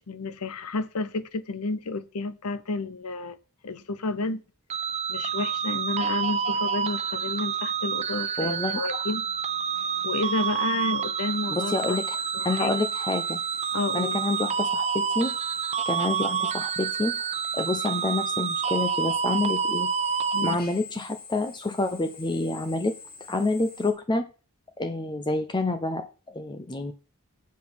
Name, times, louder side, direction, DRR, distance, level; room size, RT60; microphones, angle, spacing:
voice 1, 0.0-3.4 3.6-4.4 5.1-9.3 10.0-12.0 12.3-12.7 13.7-14.2 20.3-20.6, left 3 dB, 80° left, 0.8 m, -31 dB
sound 1, 4.7-20.6, right 6 dB, 30° right, 0.4 m, -28 dB
Drill, 6.5-23.9, left 5 dB, 45° left, 2.0 m, -47 dB
voice 2, 8.4-8.8 11.5-12.2 12.4-13.4 13.9-15.4 15.9-17.3 17.5-19.9 20.4-23.0 23.3-24.3 24.8-26.9, left 2 dB, 20° left, 0.6 m, -28 dB
7.4 x 5.8 x 6.0 m
head